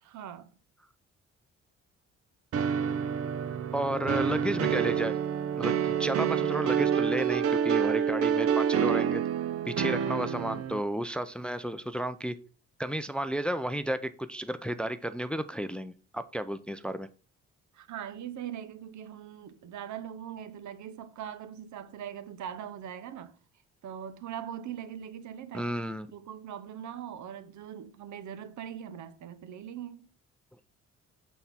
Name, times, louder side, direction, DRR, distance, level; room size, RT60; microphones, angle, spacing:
voice 1, 0.0-0.5 3.0-3.2 17.7-23.3 23.8-25.7 26.1-30.1, right 9 dB, 70° right, 0.9 m, -41 dB
sound 1, 2.5-10.8, right 8 dB, 50° right, 0.6 m, -28 dB
voice 2, 3.7-5.1 5.5-9.2 9.7-12.3 12.8-17.1 25.5-26.1, right 1 dB, 5° left, 0.4 m, -32 dB
8.0 x 4.2 x 3.5 m
cardioid pair, 90°, 30 cm